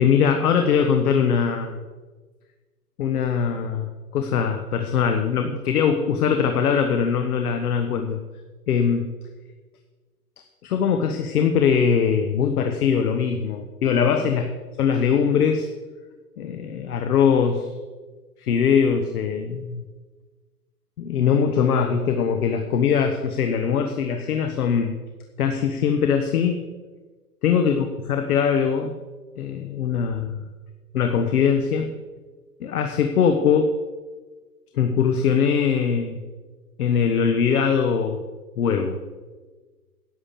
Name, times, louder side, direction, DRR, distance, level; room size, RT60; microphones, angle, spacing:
voice 1, 0.0-1.8 3.0-8.2 8.7-9.1 10.6-14.4 14.8-15.7 16.4-17.7 18.4-19.8 21.0-25.0 25.4-26.6 27.4-28.9 29.4-30.5 30.9-31.9 32.6-33.7 34.7-36.2 36.8-38.2 38.6-39.0, left 7 dB, 70° left, 6 dB, 1.2 m, -21 dB
11.0 x 6.7 x 7.3 m, 1.3 s
hypercardioid pair, 145°, 46 cm